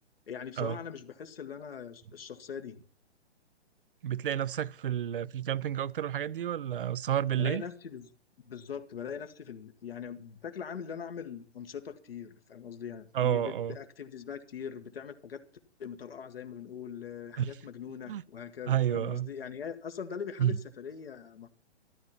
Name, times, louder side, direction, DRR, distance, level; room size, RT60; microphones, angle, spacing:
voice 1, 0.3-2.8 7.4-8.1 8.4-15.4 15.8-21.5, left 7 dB, 55° left, 1.9 m, -41 dB
voice 2, 4.0-7.6 13.1-13.8 17.4-17.5 18.1-18.2 18.7-19.3 20.4-20.6, right 10 dB, 50° right, 0.7 m, -30 dB
13.5 x 13.0 x 5.9 m
figure-of-eight pair, 125°, 34 cm